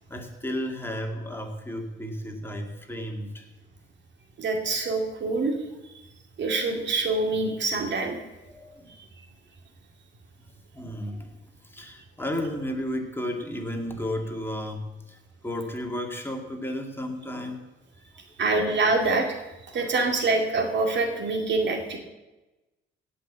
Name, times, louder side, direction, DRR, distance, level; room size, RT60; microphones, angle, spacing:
voice 1, 0.1-3.5 8.5-8.9 10.7-11.4 11.7-17.6 19.7-19.9, left 1 dB, 10° left, 2 dB, 2.2 m, -33 dB
voice 2, 4.4-5.5 6.4-8.2 18.4-19.3 19.7-22.0, right 3 dB, 65° right, 3 dB, 2.4 m, -25 dB
17.0 x 5.9 x 8.1 m, 1.1 s
cardioid pair, 90°, 20 cm